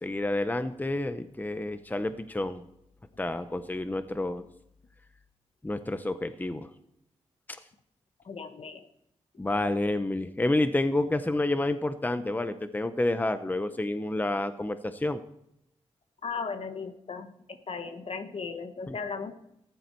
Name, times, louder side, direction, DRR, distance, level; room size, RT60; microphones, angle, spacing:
voice 1, 0.0-2.7 3.2-4.4 5.6-6.7 9.4-15.2 18.9-19.0, left 2 dB, 15° left, 11 dB, 0.8 m, -29 dB
voice 2, 8.2-8.9 16.2-19.3, left 5 dB, 55° left, 9 dB, 1.3 m, -37 dB
14.5 x 11.0 x 4.6 m, 0.80 s
cardioid pair, 65°, 12 cm